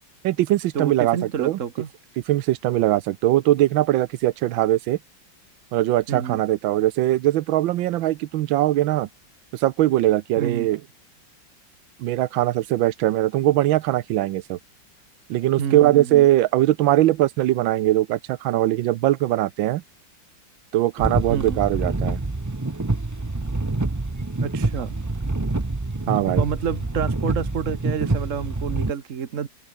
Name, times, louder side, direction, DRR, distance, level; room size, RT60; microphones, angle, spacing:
voice 1, 0.2-1.6 2.3-5.0 5.7-9.1 9.5-10.8 12.0-14.6 15.3-19.8 20.7-22.2 26.1-26.4, right 14 dB, 85° right, 1.5 m, -21 dB
voice 2, 0.7-1.9 6.1-6.4 10.4-10.7 15.6-16.3 21.3-21.6 24.4-24.9 26.4-29.5, right 7 dB, 45° right, 1.3 m, -29 dB
sound 1, 21.0-28.9, right 2 dB, 25° right, 0.3 m, -26 dB
open air
omnidirectional pair, 2.1 m